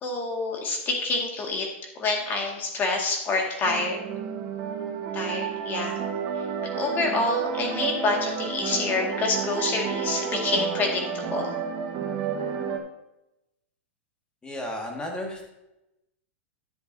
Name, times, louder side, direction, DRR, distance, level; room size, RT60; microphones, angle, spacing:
voice 1, 0.0-1.7 2.0-4.0 5.1-6.0 6.8-11.5, left 3 dB, 30° left, 1 dB, 2.0 m, -27 dB
sound 1, 3.6-12.8, right 7 dB, 40° right, 1.3 m, -31 dB
voice 2, 14.4-15.4, left 1 dB, 15° left, 1 dB, 1.8 m, -33 dB
11.0 x 7.9 x 2.7 m, 0.91 s
hypercardioid pair, 130°, 7 cm